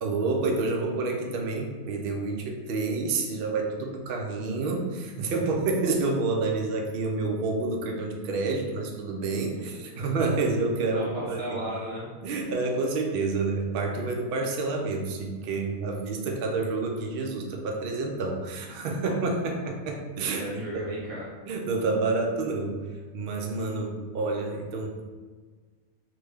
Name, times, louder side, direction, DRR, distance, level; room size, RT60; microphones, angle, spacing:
voice 1, 0.0-11.5 12.2-20.6 21.5-22.8 23.1-25.0, right 3 dB, 70° right, 1 dB, 0.5 m, -28 dB
voice 2, 9.6-10.0 10.9-12.1 20.3-21.3, equal, 90° right, -5 dB, 1.4 m, -36 dB
3.1 x 2.2 x 3.3 m, 1.5 s
omnidirectional pair, 1.5 m